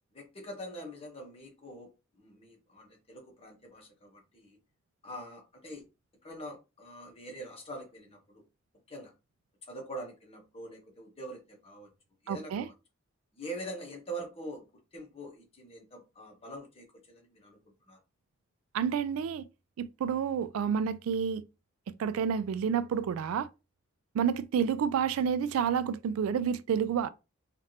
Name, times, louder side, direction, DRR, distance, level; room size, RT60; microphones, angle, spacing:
voice 1, 0.1-4.6 5.0-5.8 6.2-8.4 8.9-9.1 9.7-11.9 12.2-12.7 13.3-14.7 14.9-17.6 17.9-18.0, right 1 dB, 30° left, 0.9 m, -44 dB
voice 2, 12.3-12.7 18.7-19.4 19.8-21.4 22.0-23.5 24.1-27.1, right 7 dB, 85° right, 0.3 m, -29 dB
3.2 x 2.5 x 2.7 m
head